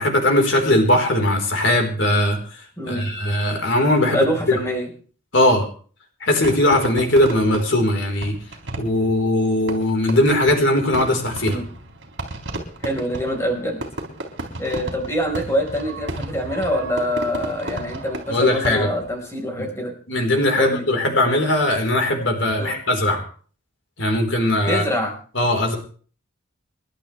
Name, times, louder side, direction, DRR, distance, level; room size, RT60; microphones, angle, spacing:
voice 1, 0.0-2.4 2.8-4.6 5.3-5.7 6.2-8.3 8.8-11.6 18.3-18.9 19.6-19.7 20.1-23.2 24.0-24.8 25.3-25.8, left 1 dB, 65° left, 3 dB, 4.3 m, -19 dB
voice 2, 2.8-3.1 4.1-4.9 11.5-11.6 12.8-13.8 14.6-19.9 20.6-20.8 22.6-22.7 24.7-25.2, equal, 15° left, 1 dB, 4.7 m, -25 dB
Fireworks, 6.4-19.1, right 1 dB, 60° right, 3.9 m, -33 dB
29.0 x 11.5 x 3.4 m, 0.42 s
head